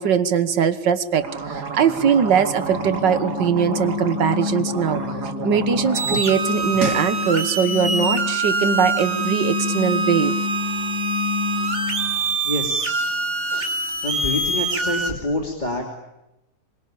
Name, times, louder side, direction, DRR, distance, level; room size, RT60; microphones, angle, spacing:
voice 1, 0.0-5.0 5.4-10.3, right 7 dB, 80° right, 12 dB, 2.0 m, -21 dB
sound 1, 1.1-6.2 6.5-7.1, right 4 dB, 65° right, 2.8 m, -30 dB
sound 2, 2.6-12.4, left 6 dB, 50° left, 1.6 m, -28 dB
sound 3, 5.9-15.1, right 3 dB, 40° right, 3.1 m, -25 dB
voice 2, 12.4-13.1 13.5-13.7 14.0-15.8, left 1 dB, 25° left, 2 dB, 3.1 m, -27 dB
26.0 x 23.0 x 8.8 m, 0.92 s
omnidirectional pair, 1.9 m